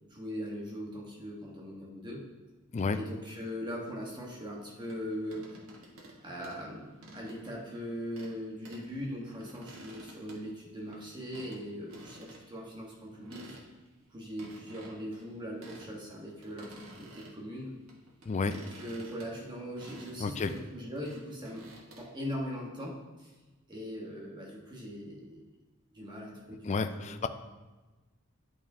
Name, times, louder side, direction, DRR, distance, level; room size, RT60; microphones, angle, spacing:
voice 1, 0.1-2.2 2.9-5.6 6.2-13.6 14.1-17.7 18.5-21.7 22.0-23.3 23.7-25.4 25.9-27.3, equal, 20° right, -3 dB, 1.3 m, -40 dB
sound 1, 4.9-6.2 6.4-7.6 8.1-8.4 8.6-8.9 9.2-11.0 11.3-11.6 11.9-12.4 12.7-12.8 13.1-13.9 14.4-15.9 16.2-17.4 17.9-22.0, right 1 dB, 75° right, 1.4 m, -51 dB
voice 2, 20.2-20.5 26.7-27.3, left 4 dB, 35° left, 10 dB, 0.4 m, -30 dB
11.0 x 4.7 x 2.8 m, 1.2 s
head